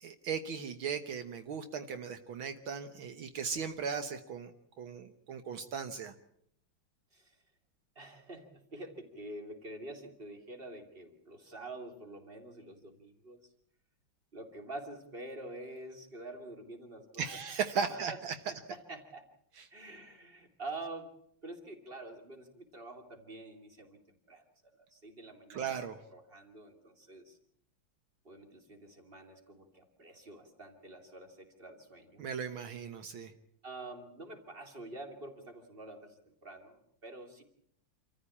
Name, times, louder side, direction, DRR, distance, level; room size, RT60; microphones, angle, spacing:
voice 1, 0.0-4.5 4.8-6.1 17.2-18.4 19.6-19.7 25.5-26.0 32.2-33.3, right 6 dB, 75° right, 8 dB, 1.9 m, -37 dB
voice 2, 7.9-13.4 14.3-17.2 17.9-18.2 18.5-19.3 19.7-21.1 21.4-24.0 24.3-24.4 24.8-25.8 26.1-27.4 28.2-32.3 33.6-37.4, right 2 dB, 25° right, 4 dB, 3.0 m, -47 dB
27.5 x 14.5 x 8.5 m, 0.69 s
omnidirectional pair, 2.3 m